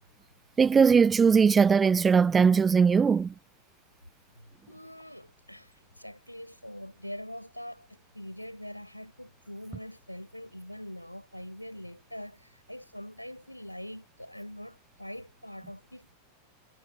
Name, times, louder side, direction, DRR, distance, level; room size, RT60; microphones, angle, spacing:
voice 1, 0.6-3.3, right 6 dB, 15° right, 0.4 m, -20 dB
voice 2, 4.7-16.1, equal, 90° left, 7.0 m, -43 dB
figure-of-eight pair, 90°, 0 cm